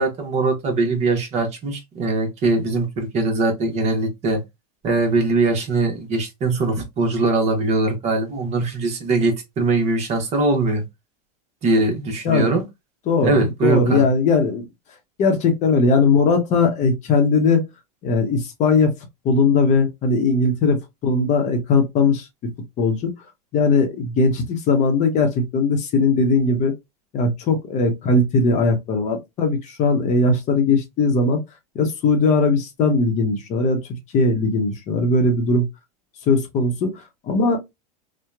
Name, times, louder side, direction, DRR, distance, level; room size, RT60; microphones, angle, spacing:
voice 1, 0.0-4.4 4.8-10.8 11.6-12.6 13.2-14.1, right 3 dB, 35° right, 1.0 m, -21 dB
voice 2, 13.1-14.6 15.2-17.6 18.0-18.9 19.2-22.3 22.8-23.1 23.5-26.8 27.1-31.4 31.7-35.7 36.3-37.6, left 3 dB, 35° left, 0.8 m, -19 dB
2.8 x 2.2 x 2.3 m
supercardioid pair, 120°, 20 cm